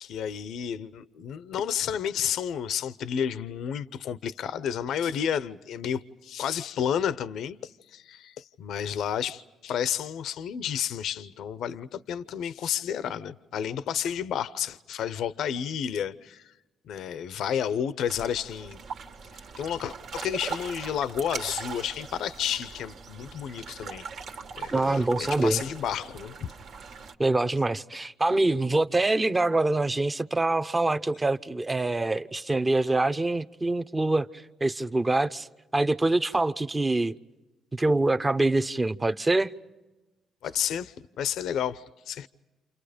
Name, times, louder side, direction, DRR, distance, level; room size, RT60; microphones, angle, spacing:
voice 1, 0.0-16.5 16.9-18.8 19.6-24.1 24.6-26.5 40.4-42.3, left 9 dB, 75° left, 0.7 m, -31 dB
sound 1, 18.1-27.1, right 5 dB, 70° right, 1.8 m, -40 dB
voice 2, 24.7-25.6 27.2-35.5 35.7-37.1 37.7-39.5, right 2 dB, 20° right, 0.8 m, -25 dB
29.0 x 29.0 x 5.1 m
cardioid pair, 90°, 0 cm